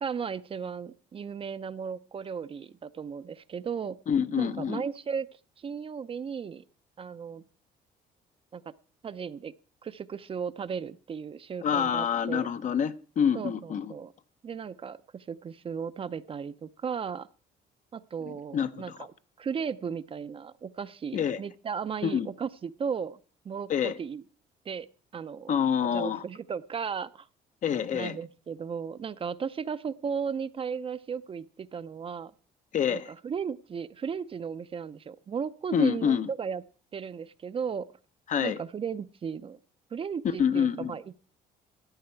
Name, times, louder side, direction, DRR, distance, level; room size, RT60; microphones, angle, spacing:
voice 1, 0.0-4.0 4.4-5.3 5.6-6.6 7.0-7.4 8.5-8.6 9.0-9.5 9.8-12.5 13.3-14.1 14.4-17.3 17.9-19.1 19.4-23.2 23.4-24.2 24.7-24.9 25.1-25.5 25.9-27.3 27.9-32.3 32.9-36.6 36.9-37.9 38.4-39.6 39.9-41.2, right 6 dB, 35° right, 0.5 m, -35 dB
voice 2, 4.1-4.8 11.6-13.9 18.2-19.0 21.1-21.4 22.0-22.3 23.7-24.0 25.5-26.2 27.6-28.2 32.7-33.1 35.7-36.3 38.3-38.6 40.4-40.9, left 8 dB, 50° left, 0.7 m, -27 dB
14.0 x 9.4 x 4.5 m
cardioid pair, 110°, 17 cm